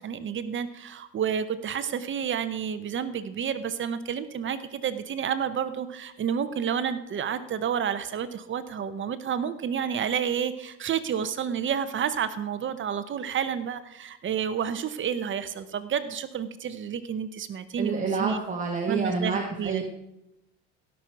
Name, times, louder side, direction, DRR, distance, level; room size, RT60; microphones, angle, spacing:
voice 1, 0.0-18.4 18.9-19.8, right 8 dB, 40° right, 12 dB, 0.8 m, -30 dB
voice 2, 17.8-19.9, right 4 dB, 25° right, 1 dB, 1.6 m, -28 dB
16.5 x 6.3 x 4.6 m, 0.85 s
supercardioid pair, 95°, 30 cm